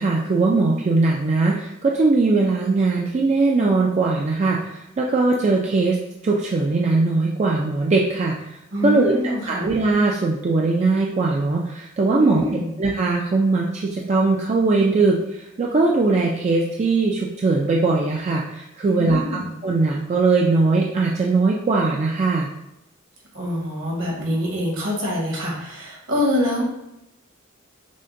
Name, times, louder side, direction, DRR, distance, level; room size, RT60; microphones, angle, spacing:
voice 1, 0.0-4.6 5.0-6.0 6.2-8.3 8.8-12.4 12.8-15.2 15.6-22.5, right 3 dB, 35° right, -2 dB, 0.3 m, -20 dB
voice 2, 8.7-9.7 12.1-12.7 18.8-19.5 23.3-26.6, left 1 dB, 70° right, -3 dB, 1.4 m, -25 dB
6.2 x 2.1 x 2.6 m, 0.86 s
head